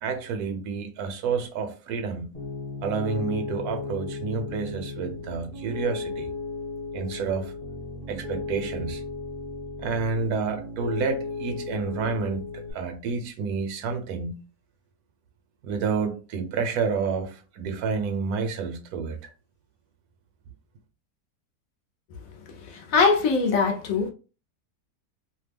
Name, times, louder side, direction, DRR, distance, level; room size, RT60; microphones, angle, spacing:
voice 1, 0.0-2.3 2.8-6.3 6.9-7.5 8.1-9.0 9.8-14.3 15.6-19.2, right 5 dB, 75° right, 1.1 m, -29 dB
Piano, 2.3-12.7, left 4 dB, 40° left, 1.1 m, -35 dB
voice 2, 22.7-24.1, left 4 dB, 65° left, 1.0 m, -22 dB
2.8 x 2.1 x 3.3 m
omnidirectional pair, 1.7 m